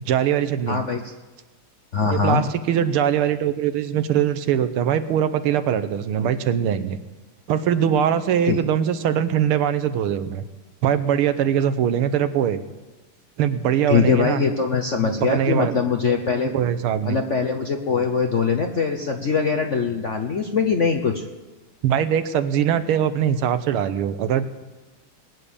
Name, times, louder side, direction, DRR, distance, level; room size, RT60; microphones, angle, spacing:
voice 1, 0.1-0.8 2.1-7.0 7.5-10.4 10.8-12.6 13.4-14.4 15.2-15.7 16.5-17.2 21.8-24.5, right 9 dB, 80° right, 11 dB, 1.7 m, -22 dB
voice 2, 0.7-1.0 1.9-2.4 8.4-8.6 13.9-16.5 17.1-21.2, left 5 dB, 55° left, 5 dB, 0.8 m, -22 dB
21.5 x 9.3 x 6.9 m, 1.2 s
omnidirectional pair, 2.4 m